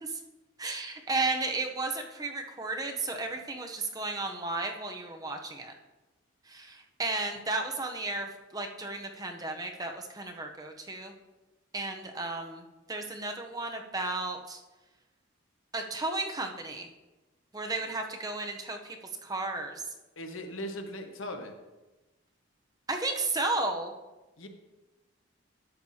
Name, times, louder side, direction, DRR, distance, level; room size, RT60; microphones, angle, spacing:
voice 1, 0.6-5.7 6.5-11.1 11.7-14.6 15.7-16.9 17.5-19.0 19.2-19.8 22.9-23.9, right 2 dB, 20° right, 3 dB, 0.7 m, -34 dB
voice 2, 20.2-21.5 24.4-24.5, equal, 75° left, 4 dB, 1.2 m, -38 dB
11.5 x 7.9 x 2.8 m, 1.1 s
head